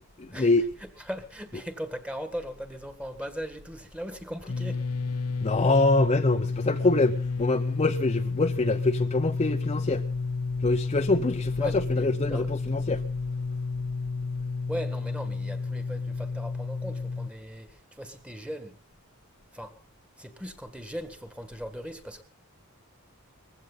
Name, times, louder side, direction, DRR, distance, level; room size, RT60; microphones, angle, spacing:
voice 1, 0.2-0.6 5.4-10.0 10.6-13.0, left 2 dB, 30° left, 0.7 m, -25 dB
voice 2, 0.8-4.8 11.6-12.5 14.7-18.8 19.5-19.7 20.2-22.2, equal, 5° right, 1.8 m, -38 dB
sound 1, 4.5-17.3, left 4 dB, 90° left, 0.9 m, -31 dB
20.5 x 15.5 x 4.0 m
head